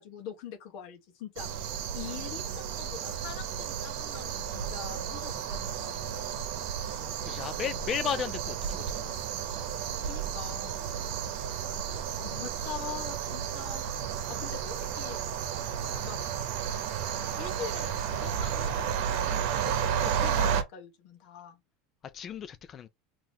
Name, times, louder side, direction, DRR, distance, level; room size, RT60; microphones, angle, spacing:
voice 1, 0.0-1.5 1.9-6.2 10.0-10.8 12.2-13.8 14.3-15.2 15.6-16.2 17.4-21.6, left 8 dB, 65° left, 1.2 m, -43 dB
sound 1, 1.4-20.6, right 8 dB, 65° right, 0.9 m, -32 dB
voice 2, 7.2-9.2 22.1-22.9, left 8 dB, 35° left, 0.3 m, -34 dB
3.9 x 3.0 x 3.1 m
supercardioid pair, 125°, 0 cm